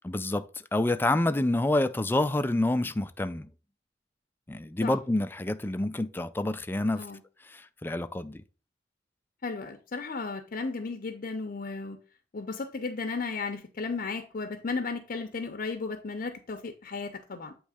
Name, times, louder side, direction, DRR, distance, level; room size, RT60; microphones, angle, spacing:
voice 1, 0.0-0.4 0.7-3.5 4.5-7.0 7.5-8.4, left 1 dB, 10° left, 0.4 m, -28 dB
voice 2, 9.4-12.0 12.3-17.5, left 4 dB, 50° left, 0.6 m, -34 dB
8.3 x 3.1 x 4.9 m
head